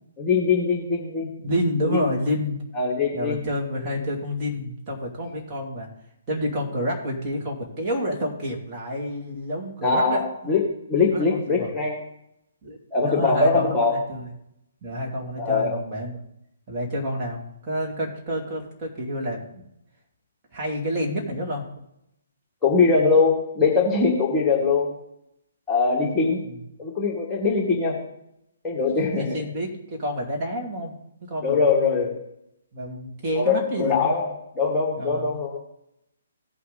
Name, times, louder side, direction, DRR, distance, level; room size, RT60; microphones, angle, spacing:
voice 1, 0.2-1.3 1.9-2.0 2.8-3.4 9.8-10.6 10.9-12.0 12.9-14.0 15.4-15.7 22.6-24.9 25.7-26.4 26.8-28.0 28.6-29.3 31.4-32.2 33.4-35.6, left 4 dB, 10° left, -2 dB, 1.8 m, -22 dB
voice 2, 1.4-2.6 3.1-5.9 6.3-10.5 11.1-11.7 12.6-14.3 14.8-16.2 16.7-19.6 20.5-21.7 26.4-26.6 29.1-30.9 31.2-32.1 32.7-34.3 35.0-35.4, equal, 25° right, -2 dB, 2.8 m, -29 dB
17.0 x 5.7 x 4.1 m, 0.79 s
figure-of-eight pair, 135°, 0 cm